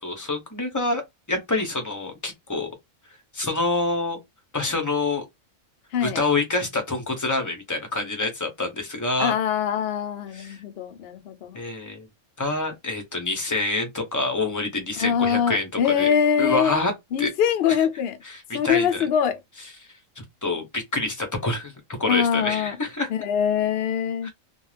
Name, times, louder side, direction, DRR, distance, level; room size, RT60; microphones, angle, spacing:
voice 1, 0.0-1.0 1.3-2.7 3.3-4.2 4.5-5.2 6.0-9.3 10.3-10.6 11.5-12.1 12.4-16.1 16.4-17.3 18.2-19.0 20.2-23.1 24.2-24.3, left 2 dB, 20° left, 0.6 m, -27 dB
voice 2, 9.2-11.6 15.0-16.8 17.1-18.2 18.5-19.4 22.0-22.8 23.2-24.3, left 8 dB, 60° left, 0.7 m, -23 dB
2.4 x 2.3 x 3.2 m
omnidirectional pair, 1.4 m